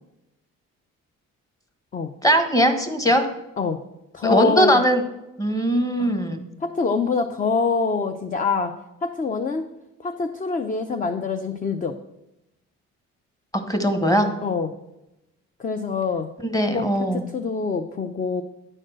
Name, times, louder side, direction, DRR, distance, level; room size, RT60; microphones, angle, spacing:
voice 1, 2.2-3.3 4.2-5.0 5.4-6.4 13.7-14.3 16.4-17.2, equal, 10° left, 7 dB, 1.3 m, -20 dB
voice 2, 4.1-4.8 6.0-6.2 6.6-8.7 9.0-9.6 10.0-11.9 14.4-14.8 15.6-16.3 16.7-16.9 17.1-18.4, left 4 dB, 25° left, 7 dB, 0.6 m, -25 dB
9.8 x 4.3 x 6.3 m, 0.92 s
cardioid pair, 90°, 30 cm